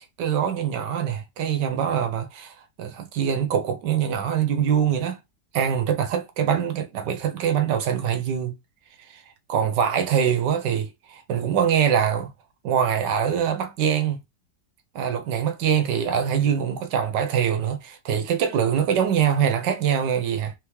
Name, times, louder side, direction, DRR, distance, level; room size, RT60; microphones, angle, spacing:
voice 1, 0.2-5.2 5.5-8.5 9.1-9.2 9.5-12.3 12.6-14.2 14.9-20.5, right 8 dB, 80° right, 1.4 m, -24 dB
4.1 x 3.5 x 3.1 m
omnidirectional pair, 1.8 m